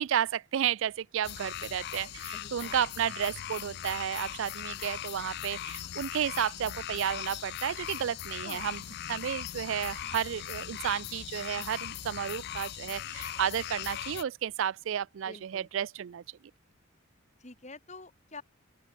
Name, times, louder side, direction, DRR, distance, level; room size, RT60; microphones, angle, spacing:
voice 1, 0.0-8.8 9.1-16.2, right 9 dB, 65° right, 0.3 m, -32 dB
sound 1, 1.2-14.2, left 12 dB, 50° left, 0.3 m, -39 dB
voice 2, 2.3-3.1 8.3-8.7 15.2-15.7 17.4-18.4, left 3 dB, 35° left, 2.5 m, -48 dB
open air
head